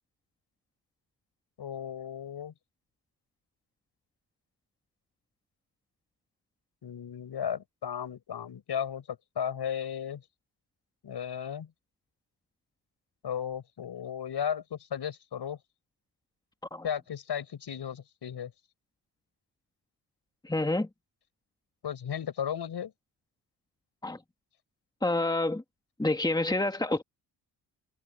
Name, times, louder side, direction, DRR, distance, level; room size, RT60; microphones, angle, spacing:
voice 1, 1.6-2.5 6.8-10.2 11.0-11.7 13.2-15.6 16.8-18.5 21.8-22.9, left 8 dB, 70° left, 5.6 m, -35 dB
voice 2, 20.4-20.9 24.0-24.2 25.0-25.6 26.0-27.0, left 2 dB, 10° left, 2.1 m, -28 dB
cardioid pair, 70°, 41 cm